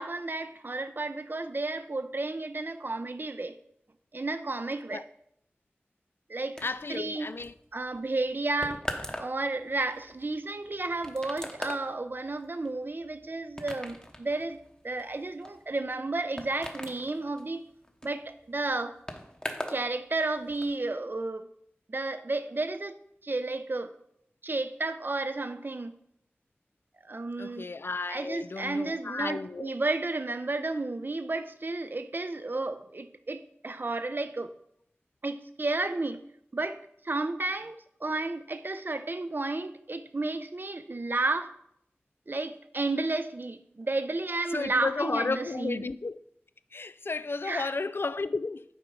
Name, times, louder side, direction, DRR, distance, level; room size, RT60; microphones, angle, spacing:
voice 1, 0.0-3.6 4.1-5.0 6.3-6.6 6.9-7.3 7.7-8.9 9.2-17.6 18.0-19.0 19.7-21.5 21.9-23.9 24.4-25.9 27.0-27.7 28.1-34.5 35.2-36.2 36.5-36.8 37.0-41.5 42.3-45.9 47.4-47.7, right 2 dB, 50° right, 0.6 m, -32 dB
voice 2, 6.6-7.5 27.4-29.7 44.5-46.2 46.7-48.6, left 3 dB, 60° left, 0.3 m, -33 dB
sound 1, 6.6-19.9 20.1-20.7, left 1 dB, 20° left, 0.9 m, -41 dB
8.1 x 4.5 x 5.3 m
wide cardioid pair, 60°, 4 cm